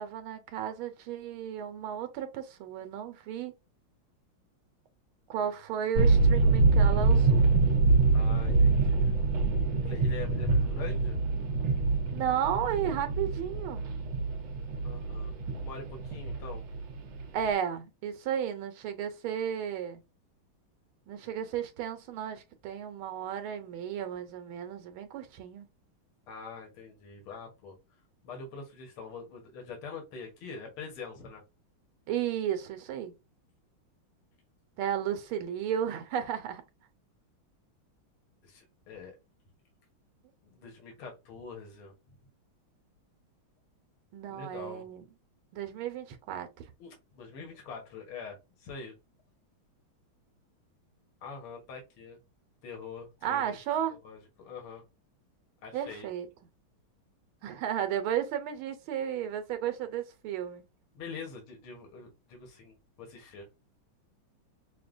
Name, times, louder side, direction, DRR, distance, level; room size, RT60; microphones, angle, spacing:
voice 1, 0.0-3.5 5.3-7.5 12.1-13.8 17.0-20.0 21.1-25.7 32.1-33.1 34.8-36.6 44.1-45.0 45.5-46.5 53.2-54.0 55.7-56.3 57.4-60.6, right 9 dB, 90° right, 1.6 m, -33 dB
sound 1, 6.0-17.5, right 3 dB, 70° right, 1.6 m, -25 dB
voice 2, 8.1-9.2 9.8-11.2 14.8-15.3 15.6-16.6 26.3-27.8 28.2-31.4 38.4-39.1 40.4-41.9 44.3-44.9 46.8-48.9 51.2-52.2 52.6-53.6 54.0-54.8 55.6-56.1 60.9-63.5, left 5 dB, 80° left, 2.1 m, -44 dB
6.5 x 2.2 x 2.5 m
omnidirectional pair, 2.3 m